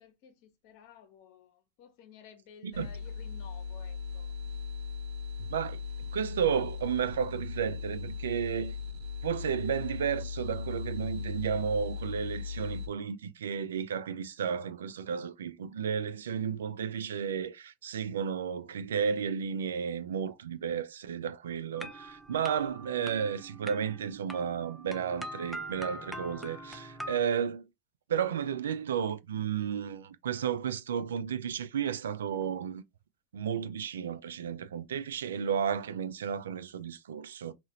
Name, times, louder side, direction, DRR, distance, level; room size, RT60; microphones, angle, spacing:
voice 1, 0.0-4.5, left 8 dB, 60° left, 1.0 m, -55 dB
sound 1, 2.7-12.9, left 5 dB, 65° right, 0.8 m, -38 dB
voice 2, 5.4-8.7 9.2-27.7 28.1-32.8 33.3-37.5, right 7 dB, 85° right, 0.3 m, -33 dB
sound 2, 21.7-27.2, right 1 dB, 5° right, 0.5 m, -43 dB
2.8 x 2.4 x 2.9 m
hypercardioid pair, 95°, 0 cm